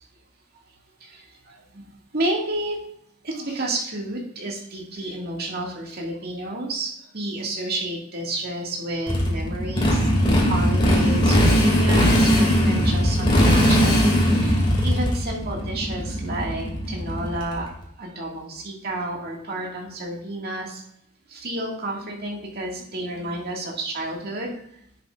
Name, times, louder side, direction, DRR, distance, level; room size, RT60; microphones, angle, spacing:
voice 1, 1.0-1.9 2.1-2.8 3.2-17.7 18.0-20.8 21.3-24.6, right 1 dB, 50° right, -1 dB, 2.1 m, -31 dB
Motorcycle, 9.1-17.7, equal, 25° left, 2.4 m, -19 dB
10.5 x 7.4 x 2.5 m, 0.71 s
head